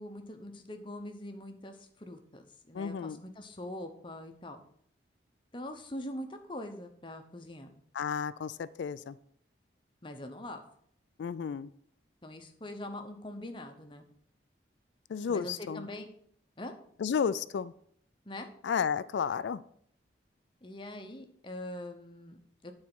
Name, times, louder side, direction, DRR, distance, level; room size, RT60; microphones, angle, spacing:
voice 1, 0.0-4.6 5.5-7.7 10.0-10.6 12.2-14.1 15.3-16.1 16.6-16.7 18.3-18.5 20.6-22.7, left 1 dB, 25° left, 5 dB, 0.9 m, -43 dB
voice 2, 2.7-3.2 7.9-9.2 11.2-11.7 15.1-15.9 17.0-17.7 18.6-19.6, left 6 dB, 80° left, 16 dB, 0.3 m, -32 dB
9.3 x 4.3 x 6.1 m, 0.65 s
head